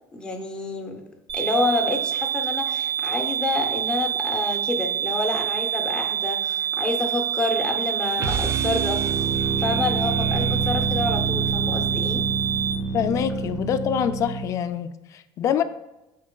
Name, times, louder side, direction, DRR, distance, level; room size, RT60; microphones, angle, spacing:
voice 1, 0.1-1.0 1.3-12.2, left 2 dB, 10° left, 3 dB, 0.7 m, -28 dB
sound 1, 1.3-12.7, right 9 dB, 70° right, 1.6 m, -27 dB
sound 2, 8.2-14.6, right 4 dB, 30° right, 0.4 m, -27 dB
voice 2, 12.9-15.6, left 9 dB, 40° left, 11 dB, 0.3 m, -25 dB
11.0 x 3.9 x 2.2 m, 0.98 s
cardioid pair, 160°, 8 cm